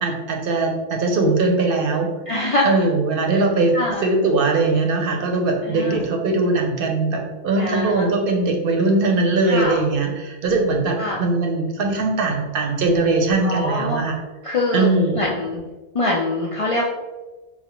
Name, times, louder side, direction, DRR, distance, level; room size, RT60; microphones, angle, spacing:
voice 1, 0.0-2.1 2.6-14.2 14.7-15.3, right 3 dB, 65° right, 3 dB, 0.7 m, -20 dB
voice 2, 2.3-2.7 3.7-4.0 5.7-6.0 7.6-8.1 9.5-9.8 11.0-11.2 13.4-14.0 14.4-14.9 15.2-15.6 15.9-16.8, left 2 dB, 55° left, -4 dB, 0.4 m, -23 dB
4.5 x 2.0 x 2.9 m, 1.2 s
omnidirectional pair, 1.0 m